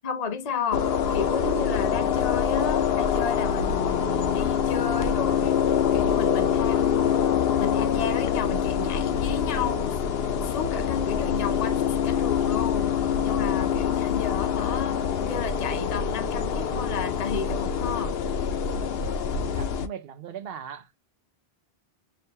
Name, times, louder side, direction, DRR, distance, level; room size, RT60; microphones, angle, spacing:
voice 1, 0.0-7.2 7.6-10.0 10.4-12.9 13.2-18.2, left 5 dB, 40° left, 0.7 m, -32 dB
sound 1, 0.7-19.9, left 8 dB, 75° left, 0.8 m, -25 dB
voice 2, 19.3-20.9, right 8 dB, 70° right, 0.9 m, -39 dB
6.6 x 2.2 x 2.8 m
omnidirectional pair, 1.0 m